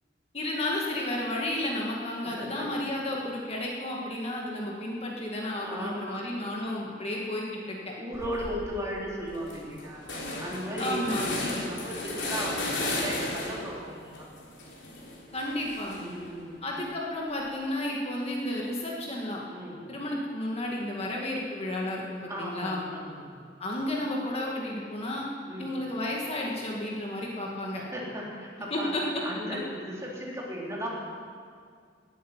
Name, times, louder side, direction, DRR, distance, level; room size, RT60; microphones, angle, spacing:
voice 1, 0.3-7.9 10.8-11.3 15.3-16.0 16.6-19.4 19.9-22.9 23.6-25.3 25.6-27.8 28.7-29.0, left 1 dB, 35° left, -2 dB, 2.0 m, -32 dB
voice 2, 2.2-2.7 5.6-6.5 8.0-10.0 10.4-14.3 15.9-16.6 19.5-19.8 22.2-23.4 25.5-25.7 27.7-28.9 29.2-30.9, equal, 15° right, -4 dB, 3.4 m, -36 dB
sound 1, 8.1-8.6 9.0-9.1 9.3-13.8 14.1-16.3, left 2 dB, 80° left, 3.7 m, -34 dB
19.5 x 9.3 x 7.4 m, 2.1 s
head